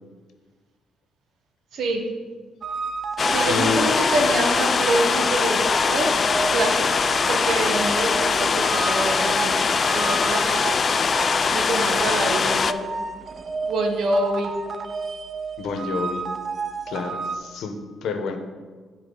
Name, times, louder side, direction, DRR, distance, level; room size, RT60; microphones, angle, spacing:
voice 1, 1.7-2.0 3.3-6.1 6.5-6.8 7.3-9.6 9.9-10.4 11.5-12.9 13.7-14.5, right 2 dB, 70° right, 3 dB, 1.3 m, -26 dB
sound 1, 2.6-17.4, right 4 dB, 45° right, 0.5 m, -32 dB
sound 2, 3.2-12.7, left 5 dB, 40° left, 0.3 m, -22 dB
voice 2, 3.5-3.9 15.6-16.3 16.9-18.4, left 4 dB, 75° left, 6 dB, 0.9 m, -28 dB
12.0 x 4.3 x 3.9 m, 1.5 s
cardioid pair, 90°, 0 cm